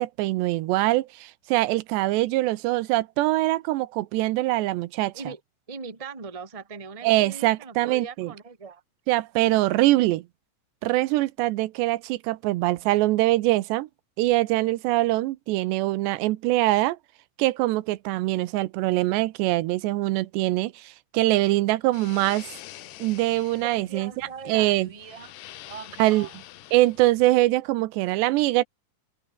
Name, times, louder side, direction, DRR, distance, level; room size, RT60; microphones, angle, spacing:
voice 1, 0.0-5.1 7.0-8.3 9.1-10.3 10.8-13.9 14.2-17.0 17.4-22.5 23.0-24.1 24.5-24.9 26.0-26.3 26.7-28.6, right 18 dB, 85° right, 3.1 m, -23 dB
voice 2, 5.7-8.8 23.6-25.3 25.7-26.4, right 5 dB, 15° right, 1.2 m, -40 dB
sound 1, 21.9-27.2, left 14 dB, 75° left, 3.3 m, -46 dB
open air
omnidirectional pair, 4.9 m